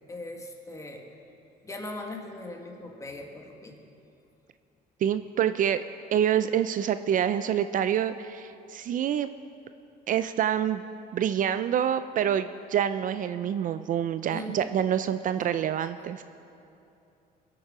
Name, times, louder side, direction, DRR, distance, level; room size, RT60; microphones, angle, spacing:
voice 1, 0.1-1.1 1.6-3.8 14.3-14.7 15.8-15.9, left 1 dB, 20° left, 2 dB, 1.8 m, -39 dB
voice 2, 5.0-5.8 6.1-9.3 10.1-10.8 11.1-16.2, right 9 dB, 50° right, 11 dB, 0.5 m, -26 dB
21.0 x 8.7 x 5.5 m, 2.7 s
cardioid pair, 110°, 17 cm